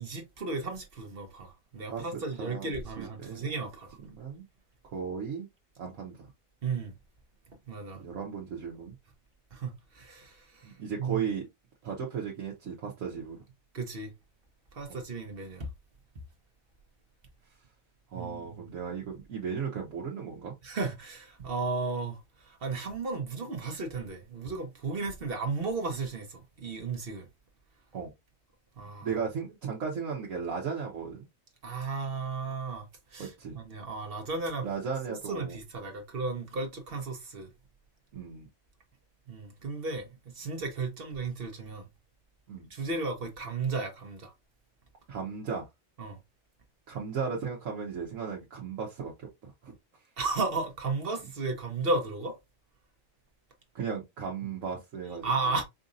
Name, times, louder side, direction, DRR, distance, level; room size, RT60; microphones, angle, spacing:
voice 1, 0.0-4.0 6.6-6.9 7.7-8.0 9.5-11.3 13.7-14.1 14.7-15.7 18.1-18.6 20.6-27.3 28.8-29.1 31.6-34.7 35.1-37.5 39.3-41.9 42.7-44.3 46.0-46.2 50.2-52.4 55.2-55.6, right 3 dB, 45° right, 1.1 m, -34 dB
voice 2, 2.4-2.7 3.0-3.4 4.0-4.4 4.9-5.5 5.8-6.2 8.0-8.9 10.6-11.5 11.8-13.4 14.9-15.0 18.1-20.5 27.9-28.1 29.0-31.3 33.2-33.6 34.6-35.6 38.1-38.5 42.5-42.7 45.1-45.7 46.9-49.7 53.7-55.3, right 6 dB, 75° right, 1.3 m, -36 dB
4.9 x 2.6 x 2.5 m
omnidirectional pair, 1.4 m